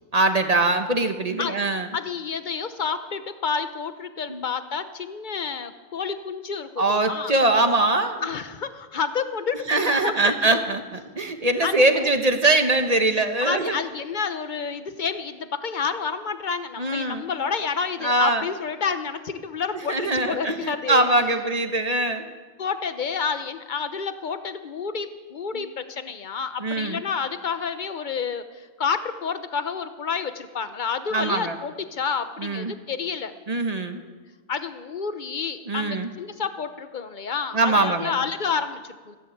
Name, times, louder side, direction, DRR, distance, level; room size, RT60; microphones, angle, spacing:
voice 1, 0.1-1.9 4.3-4.4 6.8-8.3 9.7-13.8 16.8-17.2 18.0-18.5 19.9-22.2 25.5-25.6 26.6-27.0 31.1-31.6 32.4-32.7 33.5-34.0 35.7-36.1 37.5-38.1, right 2 dB, 30° right, 6 dB, 1.2 m, -22 dB
voice 2, 1.9-7.3 8.2-10.1 10.4-10.6 11.6-12.1 13.4-21.1 22.6-33.3 34.5-39.2, left 5 dB, 40° left, 10 dB, 1.0 m, -29 dB
15.5 x 11.0 x 8.6 m, 1.4 s
omnidirectional pair, 1.4 m